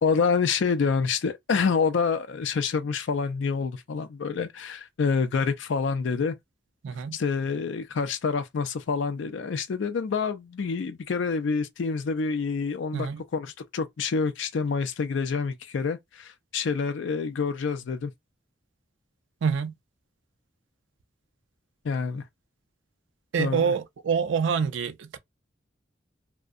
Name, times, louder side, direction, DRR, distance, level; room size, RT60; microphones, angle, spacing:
voice 1, 0.0-6.4 7.1-18.1 21.8-22.2 23.4-23.7, left 5 dB, 75° left, 0.4 m, -27 dB
voice 2, 6.8-7.2 12.9-13.2 19.4-19.7 23.3-25.2, right 6 dB, 80° right, 0.4 m, -26 dB
2.6 x 2.1 x 2.4 m
head